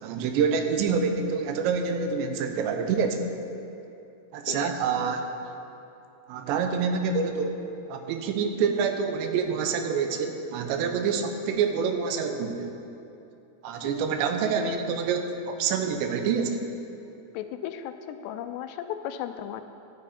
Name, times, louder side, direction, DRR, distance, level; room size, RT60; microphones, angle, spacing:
voice 1, 0.0-3.3 4.3-5.3 6.3-7.6 7.9-12.7 13.6-16.6, right 6 dB, 85° right, 5 dB, 3.1 m, -27 dB
voice 2, 13.8-14.3 14.6-14.8 17.3-19.6, left 10 dB, 85° left, 9 dB, 2.7 m, -35 dB
15.0 x 10.5 x 4.3 m, 2.8 s
omnidirectional pair, 4.9 m